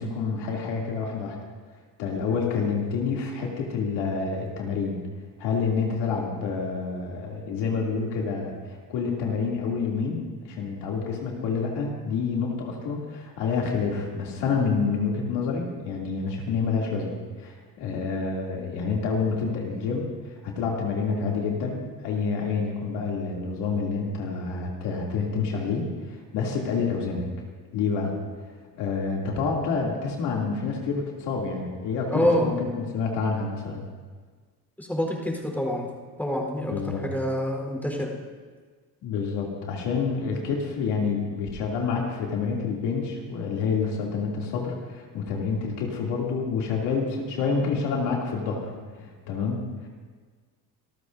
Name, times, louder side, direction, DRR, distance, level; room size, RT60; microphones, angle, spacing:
voice 1, 0.0-1.4 2.0-5.0 5.4-27.3 27.7-28.1 28.7-33.9 36.6-37.0 39.0-48.7 49.0-49.6, left 5 dB, 80° left, -2 dB, 3.1 m, -28 dB
voice 2, 32.1-32.6 34.8-35.9 36.2-36.7 37.0-38.1, equal, 5° left, 0 dB, 4.2 m, -26 dB
26.0 x 13.5 x 2.7 m, 1.5 s
cardioid pair, 120°, 40 cm